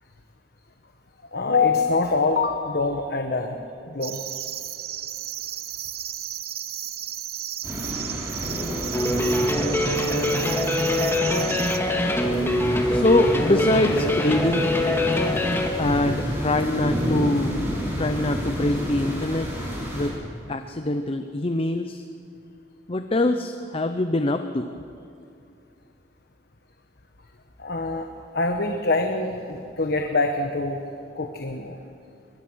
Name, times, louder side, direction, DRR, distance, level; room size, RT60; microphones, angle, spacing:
voice 1, 1.3-3.6 3.9-4.2 27.6-28.1 28.3-30.8 31.1-31.8, left 3 dB, 60° left, 4 dB, 1.2 m, -24 dB
sound 1, 4.0-11.8, right 11 dB, 55° right, 0.9 m, -33 dB
sound 2, 7.6-20.1, equal, 15° right, 7.0 m, -30 dB
sound 3, 8.9-15.7, left 1 dB, 15° left, 1.9 m, -23 dB
voice 2, 12.9-14.7 15.8-17.6 18.0-19.7 19.9-20.1 20.5-22.0 22.9-24.7, left 2 dB, 30° left, 8 dB, 0.7 m, -24 dB
22.5 x 21.5 x 6.3 m, 2.5 s
head